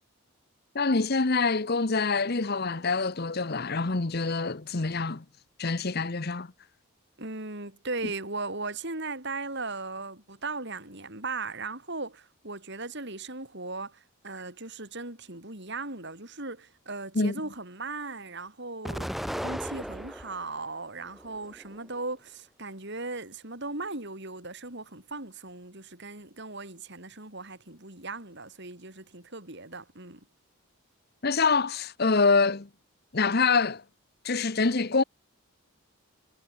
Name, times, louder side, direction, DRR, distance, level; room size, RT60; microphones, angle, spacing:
voice 1, 0.7-5.2 5.6-6.5 17.1-17.3 31.2-32.7 33.1-33.8 34.2-35.0, left 4 dB, 45° left, 0.9 m, -25 dB
voice 2, 7.2-30.3, right 3 dB, 50° right, 4.3 m, -38 dB
Explosion, 18.8-20.5 21.0-21.9, equal, ahead, 6.4 m, -36 dB
head